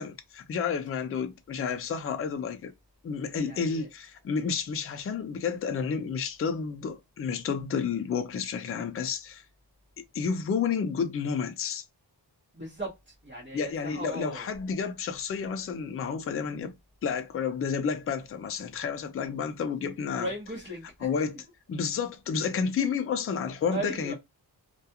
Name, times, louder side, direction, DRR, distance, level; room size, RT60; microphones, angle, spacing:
voice 1, 0.0-2.7 3.0-9.4 10.1-11.8 13.5-16.7 17.0-20.3 21.0-24.1, left 6 dB, 35° left, 0.4 m, -31 dB
voice 2, 3.4-3.9 12.5-14.5 20.2-21.1 23.7-24.1, right 1 dB, 25° right, 0.9 m, -37 dB
2.3 x 2.3 x 2.7 m
wide cardioid pair, 135°, 41 cm